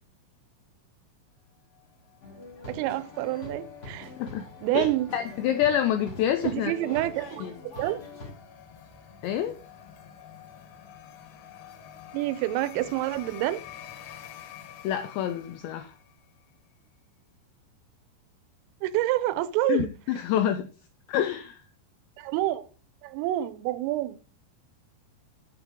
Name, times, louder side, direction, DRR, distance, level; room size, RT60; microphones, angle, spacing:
sound 1, 1.7-16.4, left 9 dB, 70° left, 3.9 m, -49 dB
sound 2, 2.2-8.3, left 2 dB, 45° left, 1.2 m, -44 dB
voice 1, 2.7-4.1 4.6-5.1 6.4-8.0 12.1-13.6 18.8-19.9 22.2-22.7 23.0-24.3, right 15 dB, 85° right, 3.3 m, -28 dB
voice 2, 5.1-6.7 7.4-7.5 9.2-9.6 14.8-15.9 19.7-20.7 21.1-21.6, left 10 dB, 85° left, 2.5 m, -27 dB
9.7 x 8.1 x 3.7 m
omnidirectional pair, 5.9 m